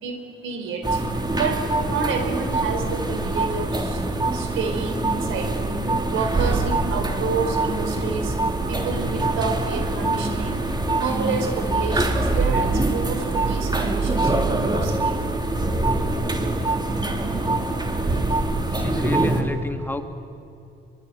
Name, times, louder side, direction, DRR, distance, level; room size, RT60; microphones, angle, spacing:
voice 1, 0.0-1.0 1.3-4.0 4.3-5.5 6.1-8.4 8.7-10.6 11.0-15.1, right 5 dB, 85° right, 6 dB, 4.5 m, -29 dB
sound 1, 0.8-19.4, right 2 dB, 20° right, 3.5 m, -24 dB
voice 2, 18.6-20.0, left 1 dB, 10° left, 6 dB, 2.2 m, -30 dB
25.0 x 23.5 x 9.4 m, 2.6 s
cardioid pair, 90°, 20 cm